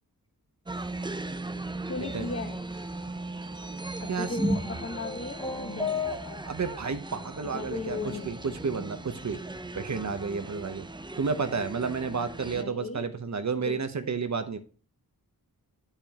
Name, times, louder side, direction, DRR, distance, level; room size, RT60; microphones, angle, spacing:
sound 1, 0.7-12.6, right 2 dB, 15° right, 0.5 m, -37 dB
voice 1, 1.9-2.6 4.0-6.4 7.4-8.5 12.5-13.1 13.6-13.8, left 4 dB, 40° left, 6 dB, 1.3 m, -37 dB
sound 2, 4.6-6.7, left 5 dB, 10° left, 1.4 m, -34 dB
voice 2, 6.5-8.0 8.2-9.4 9.7-10.8 11.2-14.6, right 5 dB, 50° right, 9 dB, 0.9 m, -31 dB
8.9 x 6.9 x 2.9 m, 0.39 s
wide cardioid pair, 90°, 37 cm